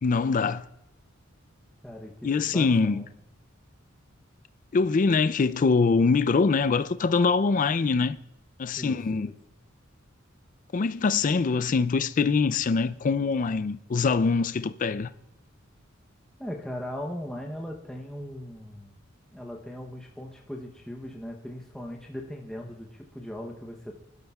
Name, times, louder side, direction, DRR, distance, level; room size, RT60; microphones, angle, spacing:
voice 1, 0.0-0.6 2.2-3.0 4.7-8.2 8.6-9.3 10.7-15.1, left 4 dB, 40° left, 0.4 m, -23 dB
voice 2, 1.8-3.1 8.8-9.3 16.4-18.9 19.3-23.9, equal, 5° left, 0.8 m, -39 dB
27.5 x 12.0 x 2.3 m
head